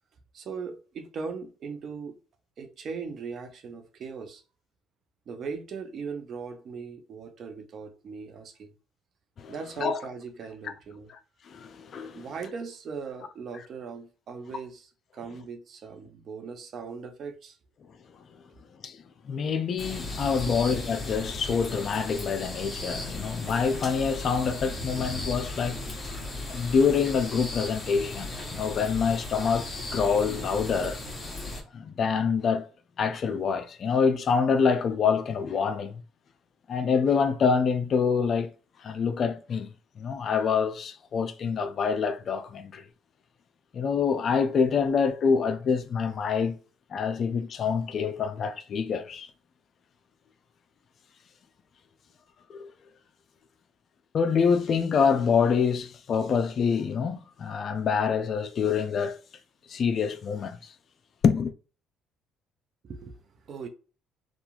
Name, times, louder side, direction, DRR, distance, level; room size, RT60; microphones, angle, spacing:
voice 1, 0.3-2.2 2.6-4.4 5.3-8.7 9.5-11.1 12.1-17.6 20.5-20.6 62.8-63.7, right 5 dB, 55° right, 0.6 m, -39 dB
voice 2, 9.4-10.0 11.5-12.2 18.8-25.8 26.5-31.0 31.7-32.7 33.0-36.0 36.7-38.5 38.8-42.8 43.7-46.6 46.9-49.3 52.5-52.7 54.1-59.2 59.7-60.7 61.2-61.5, left 6 dB, 50° left, 0.4 m, -26 dB
sound 1, 19.8-31.6, left 2 dB, 25° left, 1.1 m, -36 dB
2.8 x 2.4 x 2.4 m
supercardioid pair, 75°, 0 cm